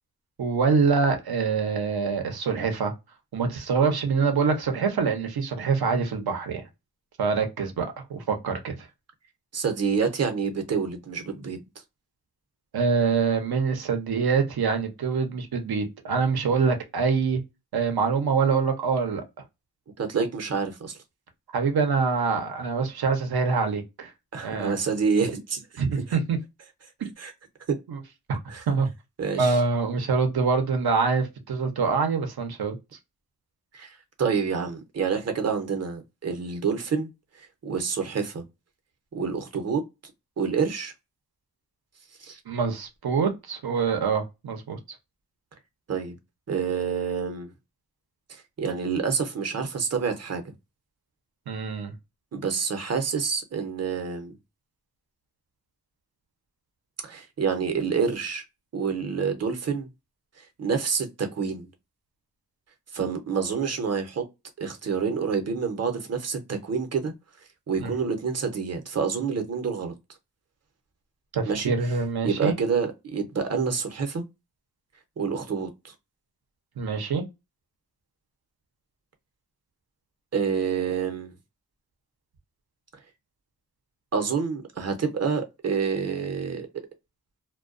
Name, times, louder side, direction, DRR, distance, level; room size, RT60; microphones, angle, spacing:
voice 1, 0.4-2.9 3.3-6.6 7.2-8.7 12.7-17.4 17.7-19.2 21.5-24.1 24.4-24.7 25.8-26.4 27.9-28.0 28.3-28.4 28.7-28.9 29.4-32.8 42.5-44.8 51.5-51.9 67.8-67.9 71.3-72.5 76.8-77.2, right 5 dB, 85° right, 0.8 m, -25 dB
voice 2, 9.5-11.6 20.0-21.0 24.3-26.2 27.2-27.3 27.7-27.8 28.5-28.6 29.2-29.6 33.7-37.1 37.4-38.4 39.1-39.8 40.4-40.9 42.2-42.4 45.9-46.2 46.5-47.5 48.3-50.4 52.3-54.3 57.0-58.4 58.7-59.9 60.4-61.7 62.9-64.2 64.6-67.1 67.7-69.9 71.5-71.7 72.2-74.2 75.2-75.7 80.3-81.3 84.1-86.9, right 5 dB, 45° right, 0.7 m, -28 dB
2.2 x 2.2 x 2.4 m
cardioid pair, 60°, 36 cm